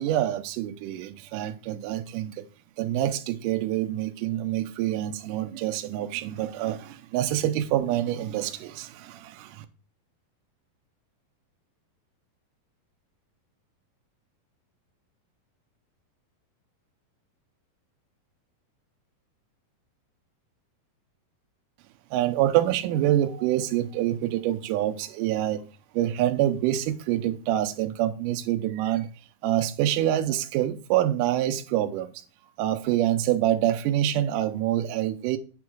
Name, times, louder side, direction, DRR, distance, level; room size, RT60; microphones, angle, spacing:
voice 1, 0.0-2.4 2.8-9.7 22.1-25.6 25.9-29.1 29.4-32.1 32.6-35.4, right 12 dB, 80° right, 2.0 m, -26 dB
8.6 x 3.5 x 6.1 m
omnidirectional pair, 4.3 m